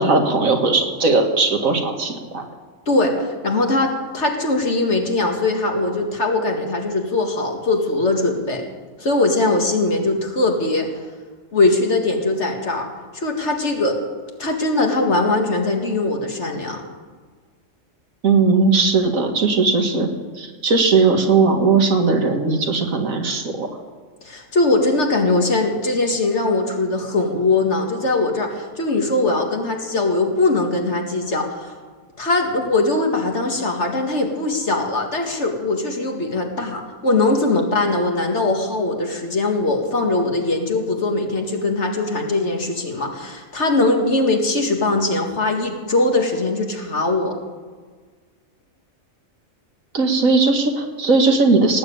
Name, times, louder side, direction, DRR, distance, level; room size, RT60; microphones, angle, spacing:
voice 1, 0.0-2.4 18.2-20.1 20.4-23.7 49.9-51.8, right 4 dB, 85° right, 4 dB, 2.2 m, -18 dB
voice 2, 2.9-8.6 9.0-10.9 11.5-12.9 13.1-14.0 14.4-16.8 24.2-31.7 32.2-47.4, left 2 dB, 55° left, 3 dB, 2.3 m, -21 dB
18.0 x 7.5 x 8.8 m, 1.5 s
omnidirectional pair, 1.4 m